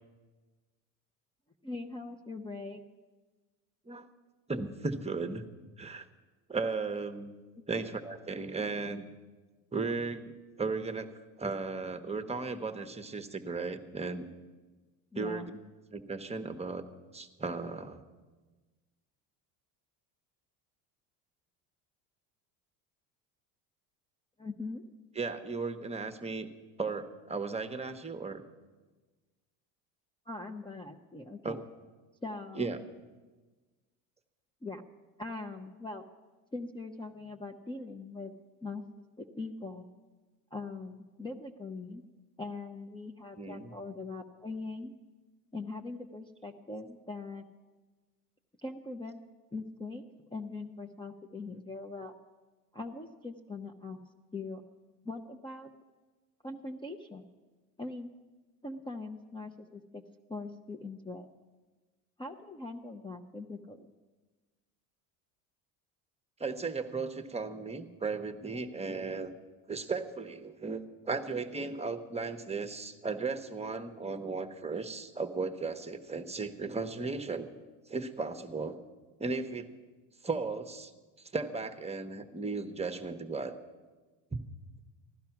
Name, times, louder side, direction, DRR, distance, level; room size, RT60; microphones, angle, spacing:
voice 1, 1.6-2.8 7.6-7.7 15.1-15.6 24.4-24.8 30.3-31.6 32.2-32.8 34.6-34.8 35.2-36.0 36.5-38.3 38.6-39.9 40.5-42.0 42.4-45.0 45.5-47.4 48.6-49.2 49.5-50.0 50.3-52.1 52.7-54.0 54.3-54.6 55.0-55.7 56.4-57.2 57.8-58.1 58.6-60.0 60.3-61.3 62.2-63.9, left 3 dB, 10° left, 3 dB, 0.8 m, -41 dB
voice 2, 4.5-5.4 5.8-6.1 6.5-7.3 7.7-9.1 9.7-11.1 11.4-14.3 15.2-15.5 15.9-16.8 17.1-18.0 25.1-26.5 26.8-28.4 31.4-31.6 32.5-32.8 43.4-43.7 66.4-69.3 69.7-77.5 77.9-78.8 79.2-79.7 80.2-80.9 81.2-83.6 84.3-84.4, right 4 dB, 15° right, 8 dB, 1.0 m, -36 dB
16.0 x 11.5 x 5.9 m, 1.3 s
supercardioid pair, 90°, 41 cm